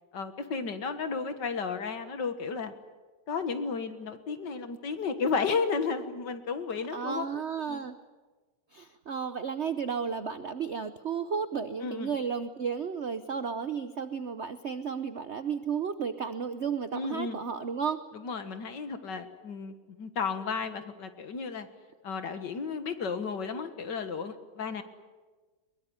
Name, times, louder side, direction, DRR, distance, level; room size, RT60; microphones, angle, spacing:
voice 1, 0.1-2.7 3.3-7.4 7.7-7.9 11.8-12.2 16.9-17.4 18.1-21.7 22.0-24.8, left 5 dB, 60° left, 9 dB, 2.1 m, -33 dB
voice 2, 6.9-8.0 8.7-18.0, right 6 dB, 55° right, 10 dB, 0.7 m, -33 dB
22.5 x 21.0 x 9.6 m, 1.3 s
omnidirectional pair, 2.3 m